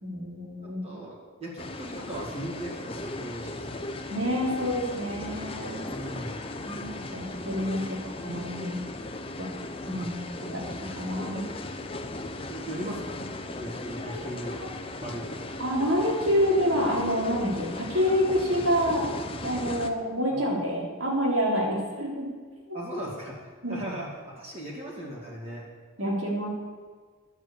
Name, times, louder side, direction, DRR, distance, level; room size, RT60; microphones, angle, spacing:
voice 1, 0.0-0.9 4.1-5.9 6.6-8.8 9.4-9.5 9.9-10.1 10.5-11.5 14.1-14.2 15.6-19.1 19.4-22.3 22.7-22.8 23.6-23.8 26.0-26.5, equal, 70° right, -2 dB, 3.7 m, -27 dB
voice 2, 0.6-3.8 5.9-6.4 9.9-10.1 12.5-15.5 20.3-20.4 22.7-25.6, right 1 dB, 30° right, -4 dB, 2.5 m, -38 dB
sound 1, 1.6-19.9, left 2 dB, 25° left, 0.7 m, -37 dB
11.0 x 7.7 x 8.6 m, 1.5 s
head